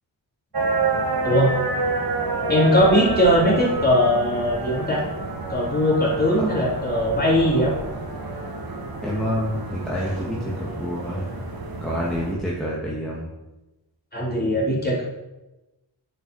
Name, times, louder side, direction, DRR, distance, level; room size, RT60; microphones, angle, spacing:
sound 1, 0.5-12.4, right 3 dB, 50° right, 1.8 m, -29 dB
voice 1, 2.5-5.0 5.5-7.7 14.1-15.0, equal, 20° left, -5 dB, 4.2 m, -20 dB
voice 2, 9.0-11.3 11.8-13.3, equal, ahead, -6 dB, 2.3 m, -28 dB
9.2 x 5.8 x 6.5 m, 1.0 s
cardioid pair, 60°, 46 cm